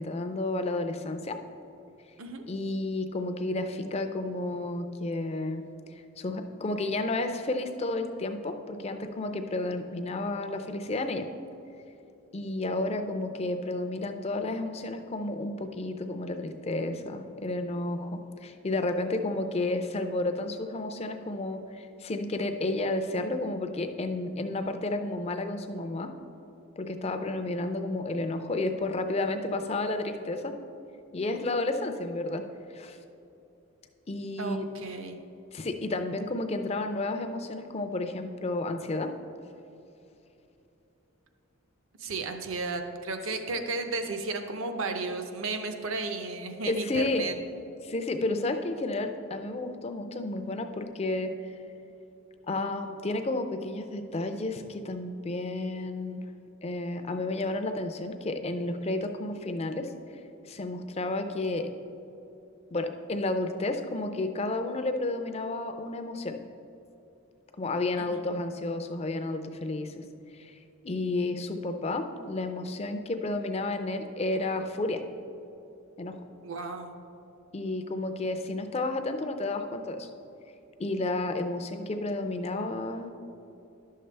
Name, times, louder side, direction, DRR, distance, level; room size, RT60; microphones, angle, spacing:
voice 1, 0.0-1.4 2.5-5.6 5.9-11.3 12.3-26.1 26.8-30.5 31.1-32.4 32.7-33.0 34.1-34.7 35.5-39.1 46.7-47.2 47.8-51.3 52.5-56.2 56.6-59.9 60.5-61.7 62.7-66.4 67.6-70.0 70.4-70.6 70.8-75.0 76.0-76.2 77.5-80.1 80.8-83.1, left 2 dB, 30° left, 7 dB, 0.4 m, -31 dB
voice 2, 34.4-35.2 42.0-47.3 68.0-68.2 76.4-77.0, right 3 dB, 65° right, 6 dB, 0.7 m, -34 dB
11.5 x 6.6 x 3.3 m, 2.9 s
head